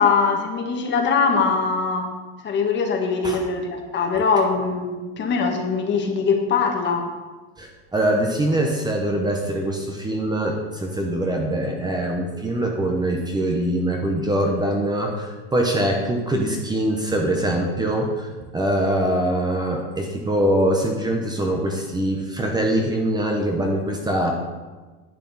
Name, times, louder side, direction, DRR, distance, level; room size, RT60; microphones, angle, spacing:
voice 1, 0.0-2.1 2.4-7.1, left 5 dB, 35° left, 3 dB, 1.4 m, -22 dB
voice 2, 7.6-24.3, right 1 dB, 15° right, 1 dB, 0.9 m, -23 dB
10.5 x 8.3 x 4.1 m, 1.3 s
cardioid pair, 150°, 32 cm